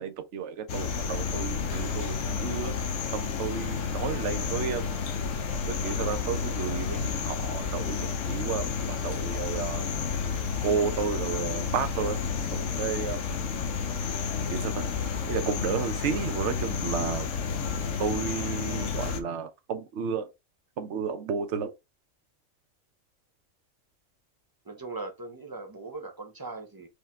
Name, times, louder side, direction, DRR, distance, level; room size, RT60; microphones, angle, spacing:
voice 1, 0.0-2.8 3.1-4.8 5.8-9.9 10.6-12.2 12.5-13.2 14.5-14.8 15.3-17.3 18.0-20.3 20.8-21.7, right 6 dB, 65° right, 1.1 m, -32 dB
sound 1, 0.7-19.2, left 5 dB, 70° left, 1.1 m, -31 dB
voice 2, 24.7-26.9, right 3 dB, 20° right, 0.9 m, -39 dB
4.8 x 2.9 x 3.6 m
omnidirectional pair, 1.4 m